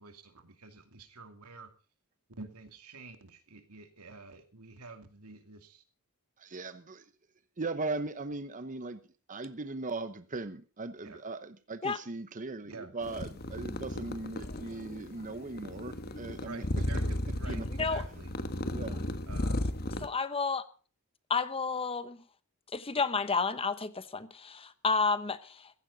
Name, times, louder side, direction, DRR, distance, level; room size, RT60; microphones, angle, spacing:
voice 1, 0.0-1.7 2.4-5.8 11.0-11.2 12.6-12.9 16.4-18.4 19.2-19.7, right 3 dB, 85° right, 2.5 m, -49 dB
voice 2, 6.4-7.0 7.6-9.0 9.3-16.6 17.5-17.7 18.7-19.1, right 3 dB, 35° right, 0.9 m, -38 dB
sound 1, 13.0-20.1, left 1 dB, 45° left, 1.4 m, -35 dB
voice 3, 20.0-20.6 21.3-22.2 22.7-25.7, left 4 dB, 25° left, 1.0 m, -31 dB
15.5 x 15.0 x 4.0 m
head